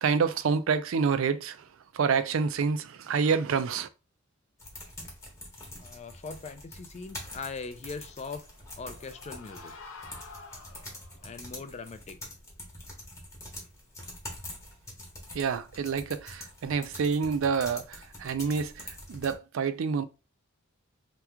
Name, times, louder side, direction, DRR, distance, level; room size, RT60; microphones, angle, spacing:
voice 1, 0.0-1.6 1.9-3.9 15.3-20.0, right 5 dB, 70° right, 0.4 m, -28 dB
sound 1, 4.6-19.4, left 1 dB, 15° left, 0.9 m, -45 dB
voice 2, 5.8-8.5 8.8-9.7 11.2-12.2, left 4 dB, 30° left, 0.4 m, -40 dB
sound 2, 8.4-11.3, left 3 dB, 75° left, 0.7 m, -48 dB
3.0 x 2.3 x 3.5 m
head